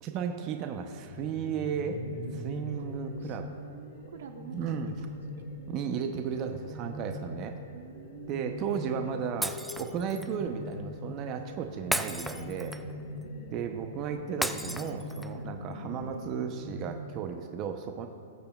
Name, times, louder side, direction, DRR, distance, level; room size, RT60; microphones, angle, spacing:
voice 1, 0.0-2.0 2.3-3.5 4.5-4.9 5.7-7.6 8.3-12.7 13.5-18.1, right 7 dB, 35° right, 5 dB, 0.7 m, -34 dB
sound 1, 1.1-16.9, left 1 dB, 50° left, 1.5 m, -42 dB
voice 2, 3.2-5.4 7.7-8.5 13.0-13.4 15.3-15.5 17.9-18.1, right 7 dB, 75° right, 5 dB, 0.9 m, -49 dB
Shatter, 9.4-10.3 11.9-13.0 14.4-15.4, equal, ahead, 0.3 m, -34 dB
19.5 x 6.8 x 2.3 m, 2.2 s
hypercardioid pair, 130°, 0 cm